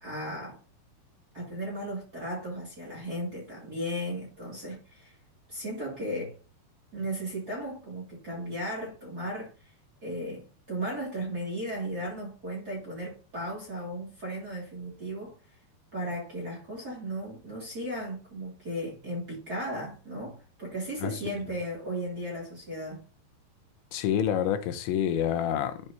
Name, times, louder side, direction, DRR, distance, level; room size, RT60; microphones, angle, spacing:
voice 1, 0.0-0.6 1.3-5.2 5.5-6.4 6.9-9.7 10.0-15.3 15.9-23.0, equal, 30° right, 2.2 m, -36 dB
voice 2, 23.9-25.8, left 9 dB, 90° left, 3.1 m, -27 dB
12.5 x 4.7 x 2.8 m
omnidirectional pair, 5.0 m